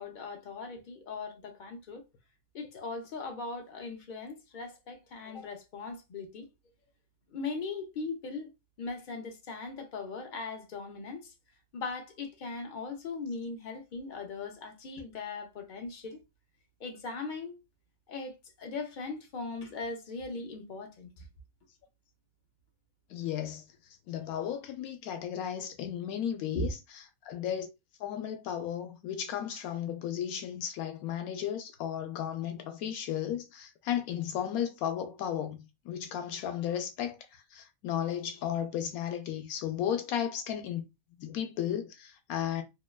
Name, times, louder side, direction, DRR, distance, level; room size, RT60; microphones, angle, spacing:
voice 1, 0.0-2.0 2.5-6.5 7.3-8.5 8.8-11.2 11.7-16.2 16.8-17.6 18.1-21.1 24.3-24.4 26.5-26.7, left 3 dB, 55° left, 0.5 m, -39 dB
voice 2, 23.1-23.6 24.1-26.7 27.3-27.7 28.0-37.2 37.5-40.8 41.2-42.6, left 9 dB, 85° left, 1.1 m, -34 dB
2.8 x 2.2 x 2.2 m
omnidirectional pair, 1.5 m